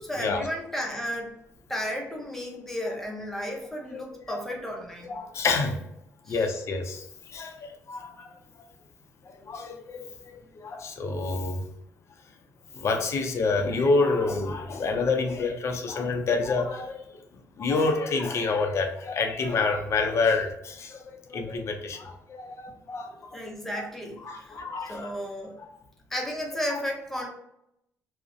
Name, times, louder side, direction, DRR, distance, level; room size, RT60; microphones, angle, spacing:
voice 1, 0.0-1.4 1.7-5.1 6.2-6.4 23.3-25.6 26.1-27.3, equal, 5° left, 0 dB, 0.6 m, -33 dB
voice 2, 5.0-5.8 6.3-8.3 9.4-11.6 12.7-17.1 17.6-21.0 21.3-23.5 23.8-23.9 24.2-25.1 26.7-26.8, left 3 dB, 50° left, 4 dB, 0.5 m, -28 dB
2.4 x 2.0 x 2.5 m, 0.79 s
cardioid pair, 100°, 6 cm